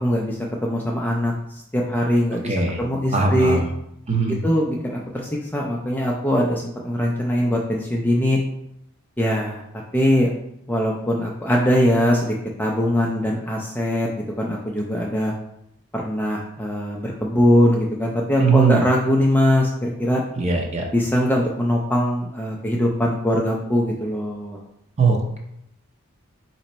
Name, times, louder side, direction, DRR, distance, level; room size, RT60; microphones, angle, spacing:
voice 1, 0.0-3.6 4.4-8.4 9.2-9.6 9.9-10.3 10.7-15.3 15.9-20.2 20.9-24.6, equal, 10° left, -2 dB, 0.4 m, -21 dB
voice 2, 2.4-2.8 3.1-3.7 4.1-4.4 18.4-18.8 20.4-20.8 25.0-25.4, right 4 dB, 30° right, 2 dB, 0.7 m, -20 dB
4.3 x 2.9 x 4.1 m, 0.80 s
head